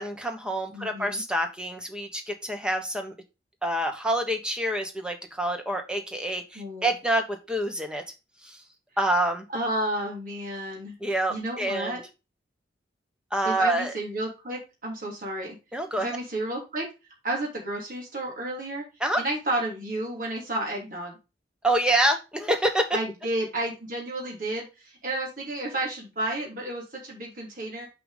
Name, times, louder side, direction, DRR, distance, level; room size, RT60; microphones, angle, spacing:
voice 1, 0.0-3.1 3.6-8.0 8.4-8.6 9.0-9.4 11.0-12.0 13.3-13.9 15.7-16.2 19.0-19.2 21.6-23.0, right 1 dB, 5° right, 5 dB, 1.2 m, -27 dB
voice 2, 0.7-1.2 6.5-6.9 9.5-10.9 11.3-12.0 13.4-15.6 16.0-16.9 17.2-18.8 19.2-21.1 22.9-27.9, right 1 dB, 50° right, -2 dB, 3.0 m, -31 dB
5.9 x 5.0 x 4.9 m, 0.27 s
head